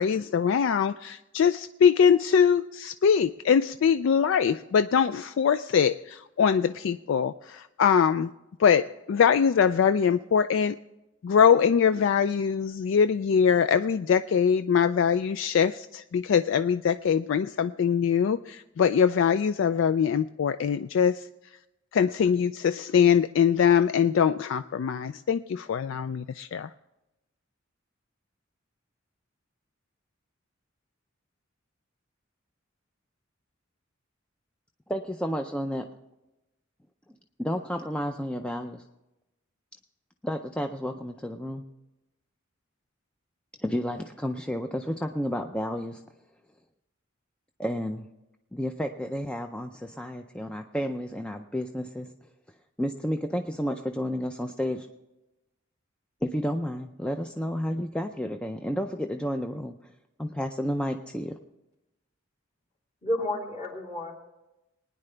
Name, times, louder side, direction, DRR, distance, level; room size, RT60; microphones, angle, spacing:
voice 1, 0.0-8.3 8.6-10.8 11.2-21.3 21.9-26.7, left 7 dB, 65° left, 12 dB, 0.3 m, -23 dB
voice 2, 34.9-35.9 37.4-38.8 40.2-41.6 43.6-46.0 47.6-48.0 48.5-52.1 52.8-54.9 56.2-59.8 60.2-61.3, equal, 5° left, 5 dB, 0.4 m, -31 dB
voice 3, 63.0-64.1, left 1 dB, 35° left, -4 dB, 3.1 m, -30 dB
21.0 x 9.9 x 3.3 m, 0.96 s
head